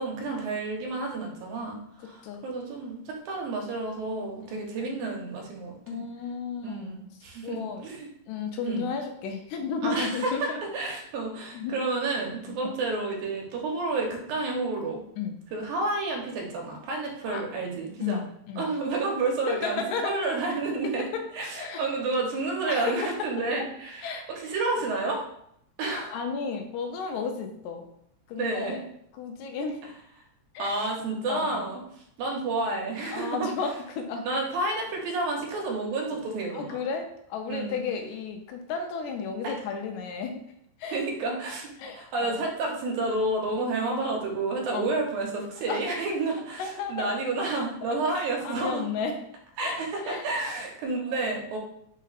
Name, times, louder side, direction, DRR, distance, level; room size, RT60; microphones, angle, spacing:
voice 1, 0.0-6.0 6.6-8.1 8.7-8.8 9.8-15.0 15.5-18.2 18.6-21.1 21.4-25.2 25.8-26.2 28.4-28.8 30.6-31.8 32.2-33.5 34.2-36.8 37.5-37.8 39.4-39.5 40.9-41.7 42.0-48.8 49.6-51.6, right 3 dB, 80° right, 1 dB, 2.2 m, -30 dB
voice 2, 2.0-2.4 4.5-4.7 5.9-7.0 7.4-7.8 8.3-10.6 11.5-11.8 12.5-12.6 15.2-15.4 17.3-17.4 18.0-18.7 19.5-20.2 20.8-20.9 21.6-21.9 22.7-23.3 23.6-23.7 24.0-24.3 26.1-27.9 28.3-28.8 29.1-29.8 30.5-30.7 31.3-31.7 33.1-34.3 36.5-37.0 37.3-40.3 40.8-41.0 41.8-42.4 44.7-44.9 45.7-45.8 46.6-47.1 48.4-49.2 49.6-49.8 50.0-50.3 51.0-51.2, left 5 dB, 80° left, 4 dB, 1.8 m, -33 dB
5.3 x 2.1 x 3.9 m, 0.72 s
omnidirectional pair, 3.6 m